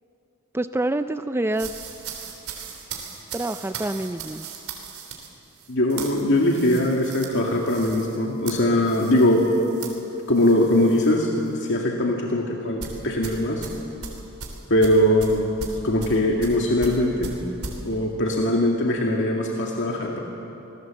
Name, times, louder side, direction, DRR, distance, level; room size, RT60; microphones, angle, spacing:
voice 1, 0.5-1.7 3.3-4.4, right 1 dB, 10° right, 10 dB, 0.4 m, -26 dB
sound 1, 1.5-11.1 11.5-11.7 12.8-17.8, right 5 dB, 90° right, 3.5 m, -38 dB
voice 2, 5.7-9.5 10.3-13.7 14.7-15.6 15.8-17.4 17.8-20.2, left 1 dB, 60° left, 0 dB, 2.0 m, -21 dB
26.5 x 19.0 x 7.6 m, 3.0 s
head